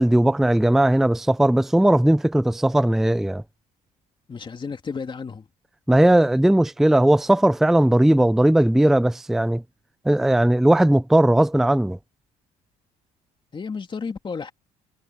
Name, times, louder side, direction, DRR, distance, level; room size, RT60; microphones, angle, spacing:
voice 1, 0.0-3.4 5.9-9.6 10.1-12.0, right 1 dB, ahead, 0.5 m, -18 dB
voice 2, 4.3-5.5 13.5-14.5, left 5 dB, 30° left, 2.8 m, -32 dB
cardioid pair, 110°, 17 cm